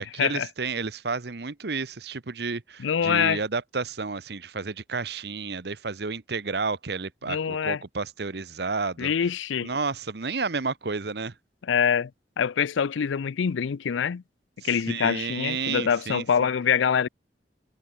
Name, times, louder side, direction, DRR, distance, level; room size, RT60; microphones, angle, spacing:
voice 1, 0.0-9.1 9.6-11.3 14.6-16.5, right 4 dB, 60° right, 0.9 m, -31 dB
voice 2, 2.8-3.4 7.3-7.8 9.0-9.7 11.6-12.1 12.4-14.2 14.6-17.1, left 7 dB, 90° left, 0.4 m, -25 dB
head